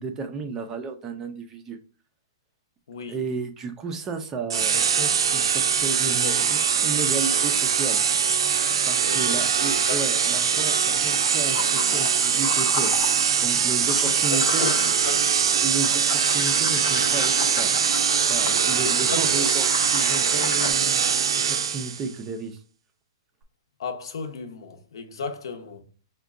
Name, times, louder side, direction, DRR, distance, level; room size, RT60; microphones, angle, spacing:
voice 1, 0.0-1.8 3.1-8.0 8.9-13.0 13.4-14.7 15.6-17.7 18.3-21.0 21.5-22.6, right 4 dB, 15° right, 0.3 m, -33 dB
voice 2, 2.9-3.2 6.0-6.4 6.8-7.4 9.1-10.3 13.8-14.5 14.7-15.6 18.8-19.6 23.8-25.8, left 5 dB, 75° left, 0.7 m, -36 dB
sound 1, 4.5-22.1, right 7 dB, 85° right, 0.5 m, -22 dB
sound 2, 10.3-15.4 15.6-20.7, left 6 dB, 40° left, 0.6 m, -35 dB
4.6 x 2.2 x 3.5 m
hypercardioid pair, 170°, 3 cm